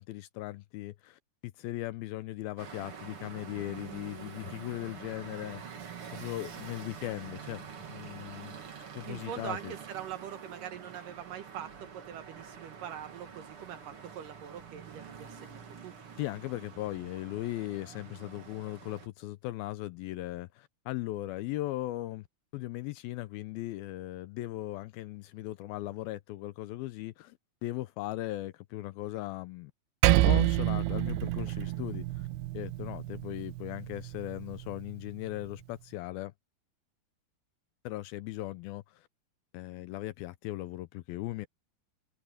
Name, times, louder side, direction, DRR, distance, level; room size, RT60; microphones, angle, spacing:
voice 1, 0.0-5.8 6.1-8.6 9.0-9.7 16.2-22.3 22.5-27.4 27.6-29.7 30.3-32.3 32.5-36.3 37.8-39.1 39.5-41.5, left 16 dB, 80° left, 2.3 m, -38 dB
sound 1, 2.6-19.1, right 7 dB, 40° right, 2.4 m, -46 dB
voice 2, 9.1-13.8 14.2-15.9, right 10 dB, 70° right, 2.3 m, -43 dB
Percussion, 30.0-34.8, right 16 dB, 85° right, 2.7 m, -28 dB
omnidirectional pair, 4.6 m